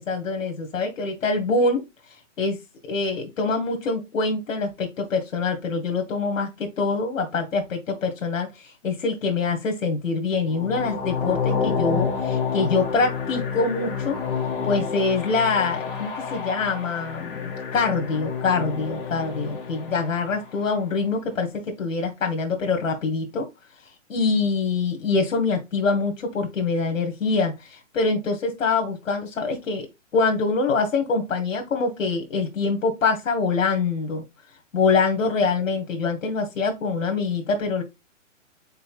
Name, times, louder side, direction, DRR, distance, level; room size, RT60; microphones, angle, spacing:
voice 1, 0.0-1.8 2.4-2.6 2.8-14.2 14.6-23.5 24.1-29.9 30.1-34.2 34.7-37.8, left 4 dB, 80° left, 3 dB, 1.5 m, -24 dB
sound 1, 10.5-20.6, left 6 dB, 45° left, 1.5 m, -29 dB
5.6 x 4.0 x 2.3 m, 0.22 s
hypercardioid pair, 165°, 38 cm